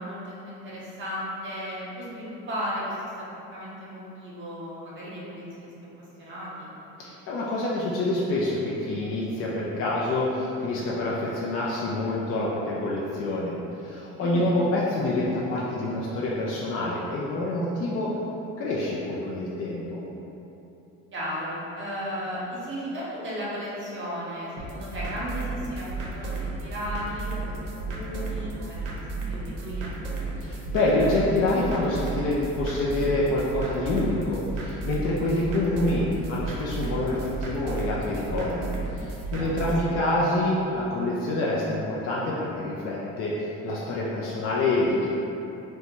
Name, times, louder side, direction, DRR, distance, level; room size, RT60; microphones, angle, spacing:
voice 1, 0.0-2.9 3.5-5.7 6.2-6.7 14.2-14.5 21.1-30.0 39.3-39.7 39.9-40.0, equal, 40° right, -8 dB, 0.8 m, -35 dB
voice 2, 7.0-13.5 13.8-18.2 18.6-20.0 30.4-45.1, left 2 dB, 50° left, -5 dB, 0.4 m, -27 dB
sound 1, 24.6-39.8, right 3 dB, 80° right, 0.6 m, -33 dB
2.6 x 2.2 x 3.0 m, 3.0 s
cardioid pair, 95°, 31 cm